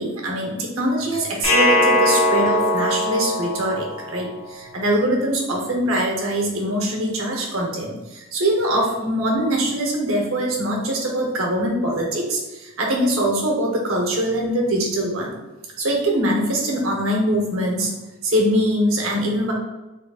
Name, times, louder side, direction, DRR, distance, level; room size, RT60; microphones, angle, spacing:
voice 1, 0.0-15.4 15.8-17.9 18.2-19.5, right 1 dB, 80° right, 0 dB, 0.9 m, -23 dB
sound 1, 1.4-4.5, left 1 dB, 80° left, 0.8 m, -20 dB
3.6 x 3.2 x 2.3 m, 1.1 s
head